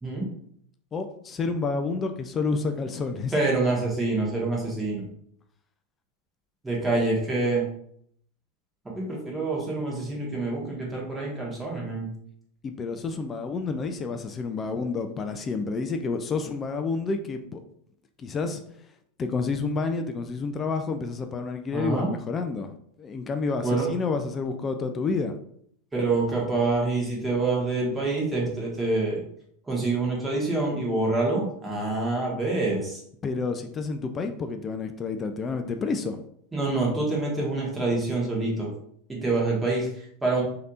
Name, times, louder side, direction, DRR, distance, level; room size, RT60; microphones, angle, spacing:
voice 1, 0.9-3.3 12.6-17.6 18.2-18.6 19.2-25.3 33.2-36.2, left 4 dB, 30° left, 7 dB, 0.3 m, -29 dB
voice 2, 3.3-5.0 6.6-7.6 8.9-12.1 21.7-22.1 23.6-23.9 25.9-29.2 29.7-33.0 36.5-38.7 39.1-40.4, right 3 dB, 10° right, -3 dB, 1.3 m, -26 dB
3.3 x 2.8 x 2.5 m, 0.68 s
hypercardioid pair, 100°, 0 cm